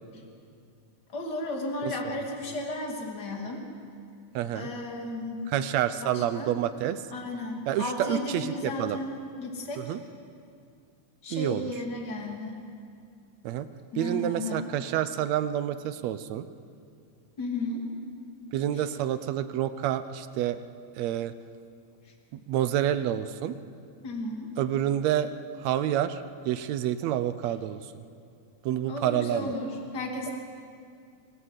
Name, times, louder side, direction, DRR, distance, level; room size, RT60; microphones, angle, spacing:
voice 1, 1.1-3.6 4.5-5.4 6.0-6.5 7.1-9.9 11.2-12.6 13.9-14.7 17.4-17.9 18.7-18.9 24.0-24.5 28.9-30.3, left 2 dB, 35° left, 1 dB, 2.9 m, -34 dB
voice 2, 4.4-4.7 5.5-7.0 7.7-9.0 9.8-10.0 11.3-11.7 13.4-13.7 14.0-16.5 18.5-20.6 21.0-21.3 22.3-23.6 24.6-25.3 25.6-27.8 28.6-29.5, right 11 dB, 70° right, 12 dB, 1.9 m, -28 dB
25.0 x 16.5 x 8.1 m, 2.4 s
omnidirectional pair, 3.5 m